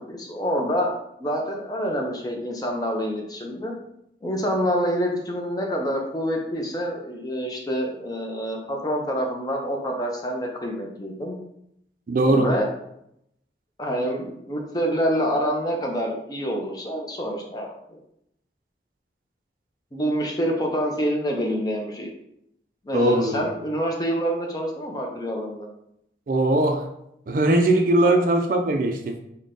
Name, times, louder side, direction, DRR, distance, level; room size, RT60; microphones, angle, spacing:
voice 1, 0.1-0.9 1.2-3.7 4.2-11.4 12.2-12.7 13.8-18.0 19.9-22.1 22.8-25.7, equal, 20° left, 0.5 m, -27 dB
voice 2, 12.1-12.5 22.9-23.4 26.3-26.9 27.3-29.2, right 1 dB, 50° right, 0.4 m, -20 dB
3.8 x 2.2 x 3.6 m
head